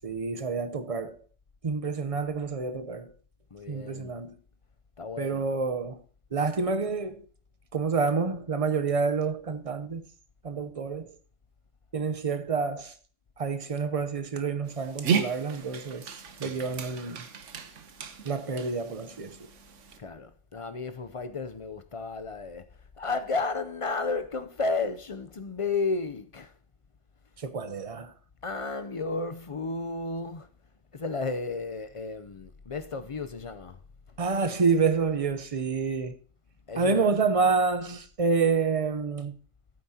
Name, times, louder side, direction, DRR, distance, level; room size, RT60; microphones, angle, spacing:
voice 1, 0.0-1.2 1.6-3.1 3.7-4.3 5.2-6.0 6.3-7.3 7.7-10.0 10.4-11.1 11.9-12.9 13.4-17.2 18.2-19.4 27.4-28.1 34.2-36.2 36.8-39.3, right 4 dB, 35° right, 0.7 m, -28 dB
voice 2, 3.5-4.2 5.0-5.5 16.3-16.7 20.0-26.6 28.4-30.5 30.9-33.8 34.1-34.2 36.7-37.1, left 3 dB, 40° left, 0.5 m, -33 dB
Dog, 14.7-20.0, right 6 dB, 80° right, 1.3 m, -34 dB
15.0 x 8.6 x 2.8 m
omnidirectional pair, 1.2 m